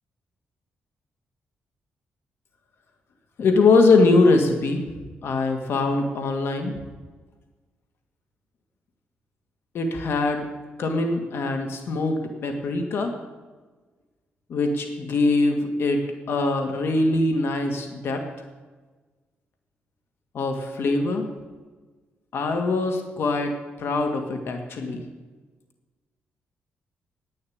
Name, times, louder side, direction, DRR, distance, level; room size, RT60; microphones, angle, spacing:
voice 1, 3.4-4.8 5.2-6.7 9.7-10.5 10.8-13.1 14.5-18.2 20.3-21.3 22.3-23.5 23.8-25.0, left 3 dB, 65° left, 4 dB, 1.9 m, -22 dB
11.0 x 8.9 x 8.6 m, 1.3 s
cardioid pair, 95°, 4 cm